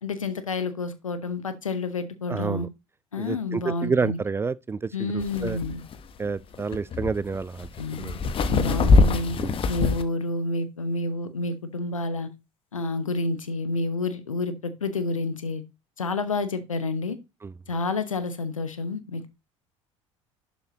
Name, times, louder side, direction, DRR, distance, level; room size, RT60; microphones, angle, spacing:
voice 1, 0.0-2.7 3.1-4.2 4.9-5.8 7.8-8.2 8.5-9.4 9.7-12.3 12.7-15.6 16.0-17.2 17.7-19.3, left 3 dB, 85° left, 0.9 m, -29 dB
voice 2, 2.3-2.7 3.2-5.6 6.2-7.7 8.0-8.2 9.4-9.6 17.4-17.5, right 4 dB, 15° right, 0.3 m, -29 dB
sound 1, 5.2-10.0, left 3 dB, 35° left, 0.8 m, -23 dB
11.5 x 4.5 x 2.8 m
figure-of-eight pair, 65°, 17 cm